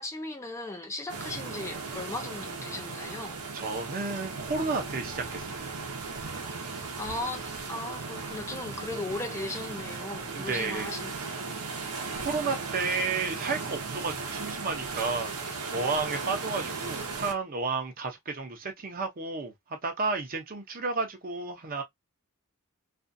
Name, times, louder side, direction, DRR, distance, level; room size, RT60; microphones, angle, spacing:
voice 1, 0.0-3.4 7.0-11.1, left 2 dB, 15° left, 0.4 m, -37 dB
sound 1, 1.1-17.3, right 4 dB, 85° right, 0.8 m, -37 dB
voice 2, 3.5-5.8 10.3-10.9 12.2-15.3 15.7-21.8, right 4 dB, 40° right, 0.7 m, -32 dB
2.5 x 2.3 x 2.5 m
head